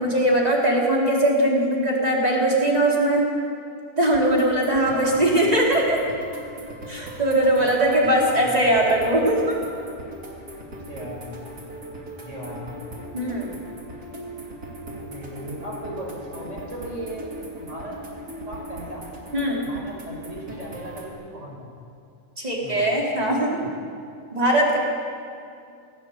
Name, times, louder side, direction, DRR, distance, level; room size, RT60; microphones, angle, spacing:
voice 1, 0.0-3.3 4.0-6.0 6.9-9.6 13.1-13.6 19.3-19.7 22.4-23.6 24.3-24.8, right 1 dB, 25° right, -3 dB, 4.1 m, -20 dB
sound 1, 4.0-21.1, equal, 90° right, 3.4 m, -39 dB
voice 2, 4.9-5.3 7.6-8.6 10.9-11.5 12.2-12.9 14.9-17.3 17.6-18.0 18.5-19.1 19.6-21.7 22.6-22.9, right 1 dB, 55° right, -2 dB, 6.0 m, -37 dB
18.5 x 17.5 x 8.1 m, 2.4 s
omnidirectional pair, 1.5 m